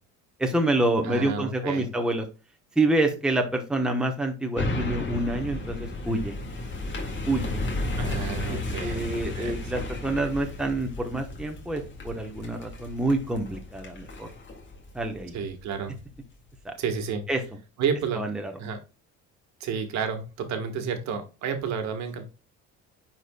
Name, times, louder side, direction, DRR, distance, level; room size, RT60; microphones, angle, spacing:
voice 1, 0.4-2.2 2.8-6.3 7.3-7.4 8.5-14.3 14.9-15.4 16.6-16.7 17.3-17.4 18.2-18.5, right 2 dB, ahead, 3 dB, 1.0 m, -27 dB
voice 2, 1.0-1.9 8.0-9.0 9.3-9.7 15.3-15.9 16.8-17.2 17.8-18.2 18.6-18.8 19.6-22.3, right 6 dB, 60° right, 6 dB, 1.4 m, -31 dB
sound 1, 4.6-16.0 16.5-16.6, left 2 dB, 35° left, 1.9 m, -34 dB
9.9 x 4.2 x 2.2 m, 0.31 s
cardioid pair, 135°, 31 cm